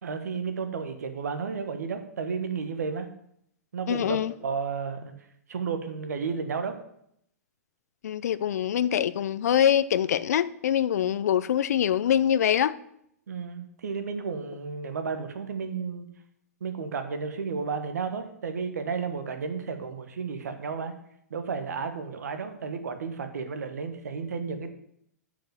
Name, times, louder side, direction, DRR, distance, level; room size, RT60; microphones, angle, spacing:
voice 1, 0.0-3.1 3.7-5.1 5.5-6.7 13.3-16.1 16.6-20.9 21.3-24.7, right 5 dB, 75° right, 1.3 m, -32 dB
voice 2, 3.9-4.3 8.0-12.7, left 10 dB, 70° left, 0.5 m, -24 dB
7.4 x 5.1 x 7.1 m
hypercardioid pair, 120°, 9 cm